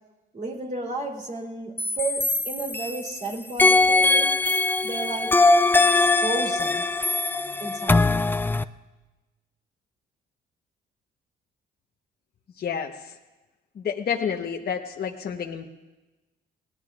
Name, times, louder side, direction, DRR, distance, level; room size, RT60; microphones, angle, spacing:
voice 1, 0.3-4.3 4.8-5.3 6.2-6.8 7.5-8.2, right 3 dB, 40° right, 0 dB, 3.3 m, -33 dB
sound 1, 1.8-3.2 3.6-8.6, left 3 dB, 10° left, 0.4 m, -21 dB
voice 2, 12.6-13.1 13.8-15.7, left 7 dB, 55° left, 2 dB, 1.0 m, -29 dB
28.5 x 18.5 x 2.4 m, 1.1 s
cardioid pair, 90°, 20 cm